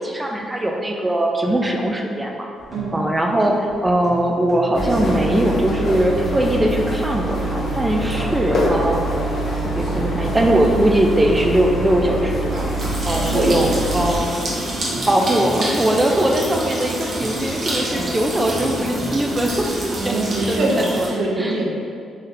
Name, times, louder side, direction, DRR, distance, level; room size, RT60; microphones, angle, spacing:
voice 1, 0.0-2.5 2.9-9.0 9.7-12.7 13.0-14.3 15.1-19.7 20.0-20.1 20.5-21.1 21.4-21.6, right 1 dB, 15° right, 1 dB, 0.4 m, -20 dB
sound 1, 2.6-19.8, equal, 5° left, 1.0 m, -37 dB
voice 2, 2.7-3.1 13.2-14.7 19.9-21.7, right 1 dB, 80° right, -3 dB, 0.7 m, -24 dB
sound 2, 4.7-14.1, right 1 dB, 50° left, 0.8 m, -24 dB
sound 3, 8.1-21.1, right 1 dB, 50° right, 0.9 m, -29 dB
3.8 x 2.7 x 3.3 m, 2.3 s
cardioid pair, 95°, 0 cm